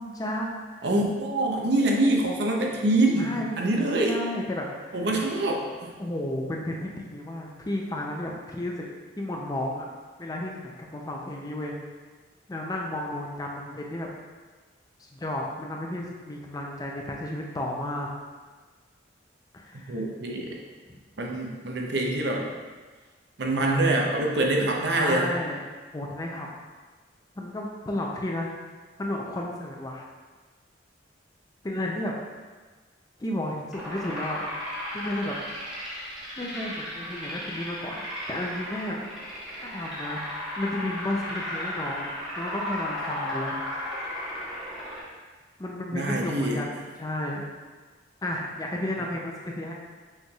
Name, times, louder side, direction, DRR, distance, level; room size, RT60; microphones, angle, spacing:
voice 1, 0.0-0.9 3.1-5.1 6.0-8.9 9.2-9.9 10.2-11.8 12.5-14.1 15.1-18.1 19.5-20.0 24.9-25.6 25.9-26.5 27.4-28.5 29.0-30.0 31.6-32.1 33.2-34.4 34.9-35.3 36.4-39.0 39.6-40.2 40.6-43.6 45.6-47.4 48.2-49.7, left 1 dB, 20° left, -1 dB, 0.4 m, -32 dB
voice 2, 0.8-4.2 4.9-6.0 19.7-20.6 21.2-22.5 23.4-25.3 45.9-46.6, right 2 dB, 60° right, 0 dB, 0.6 m, -25 dB
sound 1, 33.7-45.0, left 1 dB, ahead, 1.3 m, -35 dB
6.4 x 3.2 x 2.3 m, 1.4 s
head